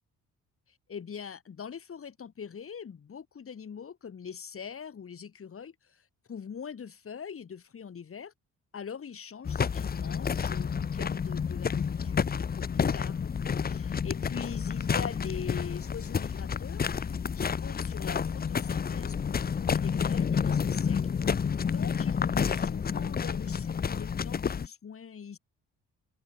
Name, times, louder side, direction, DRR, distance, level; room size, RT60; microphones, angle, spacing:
voice 1, 0.7-8.3 8.7-13.3 13.6-21.0 21.3-25.4, left 7 dB, 45° left, 7.6 m, -43 dB
sound 1, 9.5-24.7, left 6 dB, 30° left, 0.8 m, -30 dB
open air
cardioid pair, 90°, 30 cm